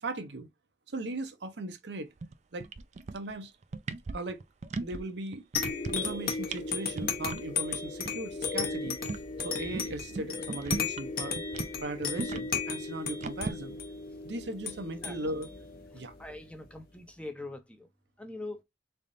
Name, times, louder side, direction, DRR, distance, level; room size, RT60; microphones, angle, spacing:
voice 1, 0.0-0.5 0.9-2.1 2.5-2.7 3.1-3.5 4.1-4.4 4.8-5.4 5.9-9.0 9.4-11.4 11.8-13.8 14.2-15.5 15.9-16.1, right 2 dB, 75° right, 0.8 m, -38 dB
sound 1, 2.2-2.3 2.6-3.3 3.6-5.0 5.3-6.2 6.5-6.6 6.9-7.4 7.8-7.9 8.0-8.1 8.5-11.1 11.4-13.5, right 3 dB, 40° right, 0.4 m, -37 dB
sound 2, 5.5-16.6, left 5 dB, 55° left, 1.0 m, -35 dB
voice 2, 16.2-17.9 18.2-18.6, left 2 dB, 5° left, 0.6 m, -42 dB
3.7 x 3.4 x 2.6 m
head